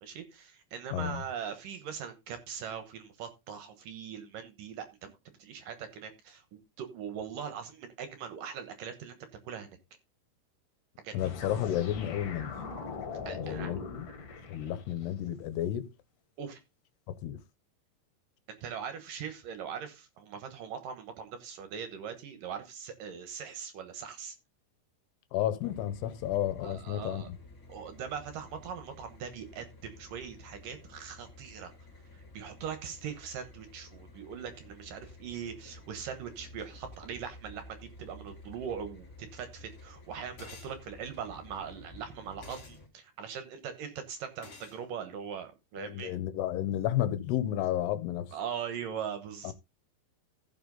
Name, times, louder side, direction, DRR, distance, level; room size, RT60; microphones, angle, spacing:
voice 1, 0.0-9.7 11.0-11.2 13.3-13.7 16.4-16.6 18.6-24.4 26.6-27.3 27.7-31.7 32.3-46.2 48.3-49.5, right 7 dB, 65° right, 2.4 m, -41 dB
voice 2, 0.9-1.2 11.1-12.5 13.3-14.1 14.5-15.9 17.1-17.4 25.3-27.4 45.8-48.3 49.4-49.5, left 11 dB, 80° left, 2.9 m, -32 dB
sound 1, 11.2-15.1, left 5 dB, 55° left, 3.5 m, -41 dB
sound 2, 25.6-42.9, left 2 dB, 20° left, 3.7 m, -52 dB
sound 3, 40.4-40.8 42.4-42.8 44.4-44.8, left 3 dB, 40° left, 2.3 m, -49 dB
15.5 x 5.9 x 3.9 m
omnidirectional pair, 4.8 m